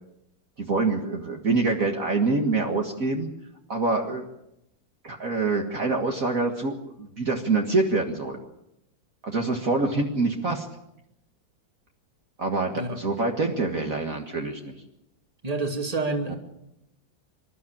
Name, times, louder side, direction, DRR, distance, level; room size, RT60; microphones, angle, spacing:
voice 1, 0.6-3.3 3.7-4.3 5.0-8.4 9.2-10.7 12.4-14.7 16.3-16.4, right 3 dB, 45° right, 1 dB, 2.1 m, -25 dB
voice 2, 15.4-16.3, right 3 dB, 20° right, 3 dB, 2.5 m, -28 dB
26.5 x 13.0 x 8.8 m, 0.84 s
omnidirectional pair, 2.1 m